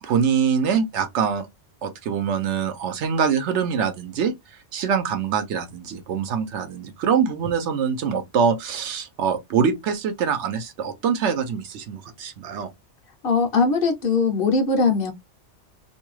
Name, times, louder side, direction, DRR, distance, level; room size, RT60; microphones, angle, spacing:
voice 1, 0.0-1.5 1.8-12.7, right 6 dB, 75° right, 0.9 m, -24 dB
voice 2, 13.2-15.1, left 4 dB, 55° left, 0.8 m, -20 dB
2.6 x 2.2 x 3.0 m
omnidirectional pair, 1.2 m